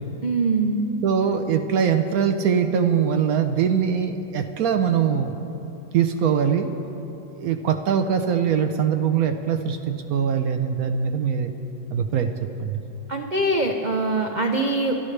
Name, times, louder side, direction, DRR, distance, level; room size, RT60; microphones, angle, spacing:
voice 1, 0.2-0.9 13.1-14.9, right 2 dB, 80° right, 2 dB, 0.4 m, -23 dB
voice 2, 1.0-5.4 5.9-6.7 7.4-11.5 11.9-12.3 12.6-12.8, right 7 dB, 65° right, 7 dB, 0.9 m, -22 dB
28.5 x 12.5 x 3.3 m, 3.0 s
omnidirectional pair, 2.0 m